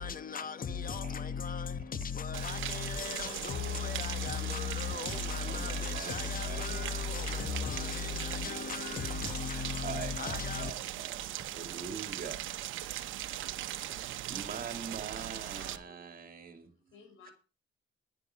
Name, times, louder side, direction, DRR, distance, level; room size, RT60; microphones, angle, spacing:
voice 1, 0.0-10.7, left 6 dB, 45° left, 1.5 m, -36 dB
Rain, 2.3-15.8, right 13 dB, 80° right, 0.9 m, -39 dB
voice 2, 4.9-7.1 7.4-7.6 9.8-11.2 11.5-12.5 13.9-16.7, right 6 dB, 45° right, 2.3 m, -44 dB
voice 3, 15.4-17.3, left 5 dB, 80° left, 5.7 m, -58 dB
10.5 x 9.9 x 5.6 m
cardioid pair, 90°, 20 cm